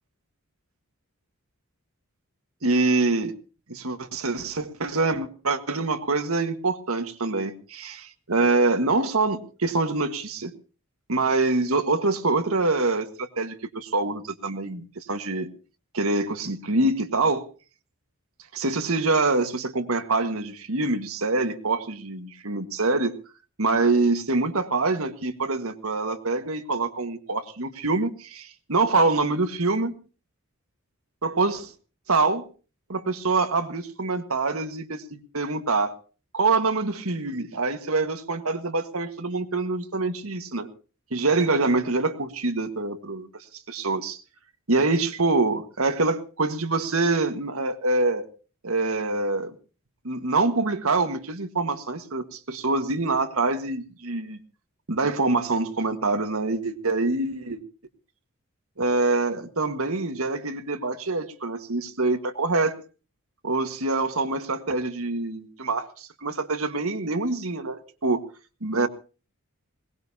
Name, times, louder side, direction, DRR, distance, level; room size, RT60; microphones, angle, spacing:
voice 1, 2.6-3.3 3.7-10.5 11.1-15.5 15.9-17.5 18.5-23.1 23.6-29.9 31.2-31.7 32.1-32.5 32.9-36.0 36.3-40.7 41.1-43.3 43.7-44.2 44.7-48.2 48.6-49.5 50.0-54.4 54.9-57.6 58.8-62.8 63.4-68.2 68.6-68.9, right 3 dB, 70° right, 8 dB, 1.6 m, -25 dB
21.5 x 19.0 x 2.8 m, 0.36 s
head